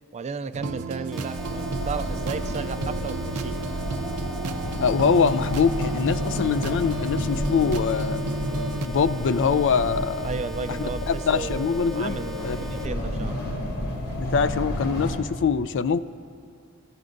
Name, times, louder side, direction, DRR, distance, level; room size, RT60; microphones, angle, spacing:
voice 1, 0.1-3.6 10.2-13.4, right 4 dB, 30° right, 12 dB, 0.4 m, -34 dB
sound 1, 0.5-8.9, right 2 dB, 85° right, 0.5 m, -31 dB
sound 2, 1.1-12.9, right 2 dB, ahead, 0.7 m, -41 dB
sound 3, 1.4-15.2, left 1 dB, 90° left, 3.0 m, -31 dB
voice 2, 4.8-8.2 8.9-10.3 10.8-12.2 12.4-12.6 14.2-16.0, left 6 dB, 55° left, 13 dB, 0.4 m, -23 dB
28.0 x 13.5 x 2.6 m, 2.3 s
head